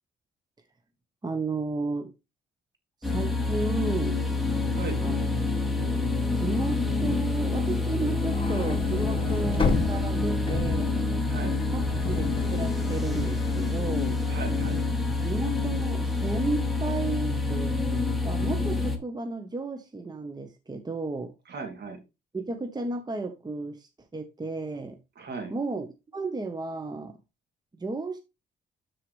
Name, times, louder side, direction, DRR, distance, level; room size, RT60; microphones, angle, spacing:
voice 1, 1.2-2.1 3.0-4.2 5.0-5.3 5.6-11.0 11.7-14.2 15.2-21.3 22.3-25.0 25.5-25.9 26.1-27.2 27.8-28.2, right 3 dB, 20° right, 1.1 m, -33 dB
sound 1, 3.0-19.0, left 3 dB, ahead, 1.8 m, -27 dB
voice 2, 4.7-5.1 11.3-11.6 14.3-14.8 21.5-22.0 25.2-25.5, right 4 dB, 55° right, 2.8 m, -37 dB
sound 2, 8.2-14.5, left 3 dB, 25° left, 2.2 m, -32 dB
12.5 x 4.7 x 3.2 m
cardioid pair, 90°, 20 cm